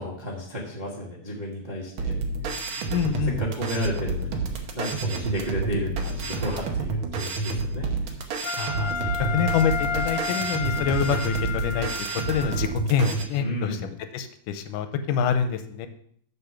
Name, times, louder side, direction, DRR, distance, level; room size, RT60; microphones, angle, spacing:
voice 1, 0.0-2.2 2.7-7.9 9.0-9.4 13.3-13.9, left 1 dB, 30° right, -3 dB, 0.8 m, -33 dB
sound 1, 2.0-13.2, right 4 dB, 65° right, 1.3 m, -29 dB
voice 2, 2.9-3.4 8.6-8.9 9.3-15.9, left 7 dB, 90° left, 9 dB, 2.3 m, -26 dB
Wind instrument woodwind instrument, 8.4-12.7, left 4 dB, 65° left, 2.4 m, -31 dB
6.9 x 6.9 x 5.8 m, 0.65 s
omnidirectional pair, 3.6 m